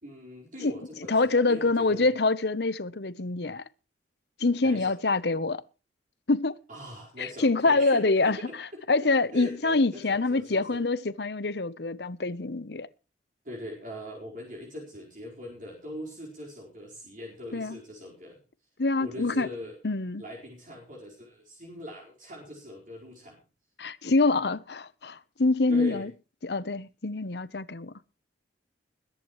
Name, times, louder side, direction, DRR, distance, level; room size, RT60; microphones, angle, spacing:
voice 1, 0.0-2.1 4.6-4.9 6.7-8.8 9.3-10.8 13.4-18.4 19.0-19.8 20.2-23.4 25.7-26.1, left 1 dB, 45° right, 4.6 m, -41 dB
voice 2, 0.6-3.6 4.4-5.6 6.3-6.6 7.2-8.4 8.9-12.9 17.5-17.8 18.8-19.5 19.8-20.2 23.8-26.1 26.4-27.9, left 3 dB, 60° left, 0.9 m, -25 dB
21.5 x 11.0 x 3.2 m
head